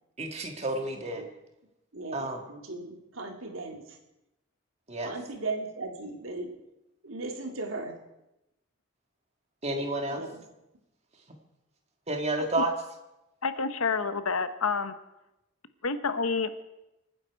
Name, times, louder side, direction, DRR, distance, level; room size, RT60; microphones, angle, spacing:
voice 1, 0.2-1.3 2.1-2.4 4.9-5.1 9.6-10.2 12.1-12.7, right 2 dB, 30° right, 4 dB, 1.8 m, -30 dB
voice 2, 1.9-4.0 5.0-6.5 7.0-7.9 10.1-10.4, right 3 dB, 75° right, 4 dB, 2.0 m, -37 dB
voice 3, 13.4-14.9 15.8-16.6, left 4 dB, 90° left, 11 dB, 1.0 m, -29 dB
26.0 x 9.8 x 4.7 m, 0.91 s
head